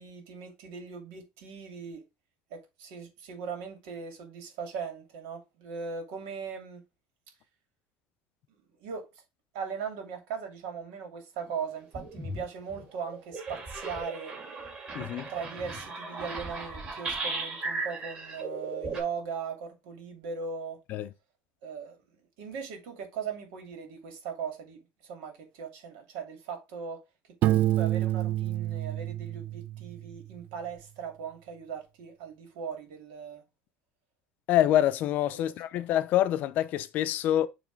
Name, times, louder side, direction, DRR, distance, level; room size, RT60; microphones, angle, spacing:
voice 1, 0.0-2.0 2.5-6.8 8.8-9.0 9.5-14.3 15.3-20.8 21.6-22.0 22.4-27.0 27.4-33.4 35.3-35.9, right 6 dB, 75° right, 2.6 m, -39 dB
sound 1, 11.5-11.6 11.9-12.4 12.7-19.0, right 3 dB, 30° right, 2.9 m, -37 dB
voice 2, 14.9-15.3 20.9-21.1 34.5-37.5, left 12 dB, 50° left, 0.6 m, -26 dB
Piano, 27.4-30.2, right 14 dB, 45° right, 0.4 m, -28 dB
7.1 x 3.3 x 4.6 m
cardioid pair, 150°, 4 cm